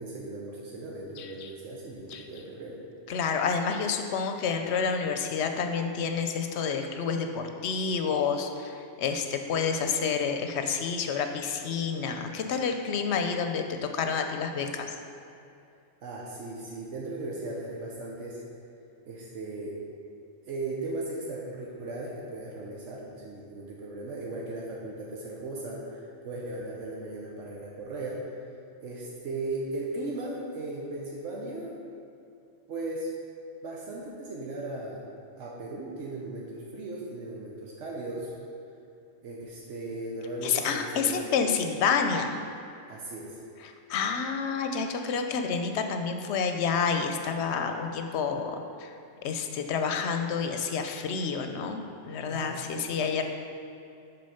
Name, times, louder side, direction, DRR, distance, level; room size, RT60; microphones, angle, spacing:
voice 1, 0.0-2.8 16.0-18.4 19.0-19.8 20.5-28.4 28.8-31.8 32.7-33.1 33.6-35.0 35.4-38.3 39.2-41.2 42.9-43.4 52.3-52.9, right 2 dB, 85° right, -4 dB, 1.2 m, -37 dB
voice 2, 1.2-1.5 2.1-2.3 3.1-14.9 40.4-42.4 43.6-48.9 49.2-53.2, left 6 dB, 70° left, 6 dB, 0.8 m, -29 dB
6.3 x 4.5 x 5.6 m, 2.5 s
omnidirectional pair, 1.2 m